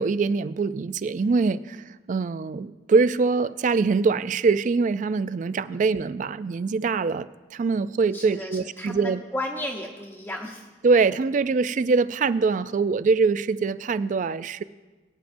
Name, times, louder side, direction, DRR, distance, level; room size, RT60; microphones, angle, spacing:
voice 1, 0.0-9.2 10.8-14.6, right 4 dB, 45° right, 15 dB, 0.3 m, -23 dB
voice 2, 8.1-10.7, left 1 dB, 10° left, -3 dB, 0.9 m, -34 dB
22.0 x 9.2 x 2.6 m, 1.2 s
head